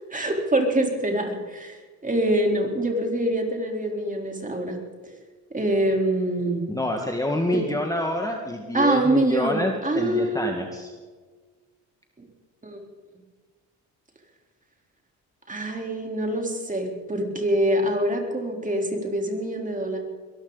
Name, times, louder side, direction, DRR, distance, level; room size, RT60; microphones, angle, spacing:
voice 1, 0.1-4.8 5.5-6.7 7.5-7.6 8.7-10.5 12.6-12.8 15.5-20.0, right 1 dB, 20° right, 2 dB, 3.8 m, -25 dB
voice 2, 6.7-10.9, left 1 dB, 10° left, 2 dB, 1.8 m, -27 dB
22.0 x 14.0 x 4.1 m, 1.4 s
supercardioid pair, 70°, 39 cm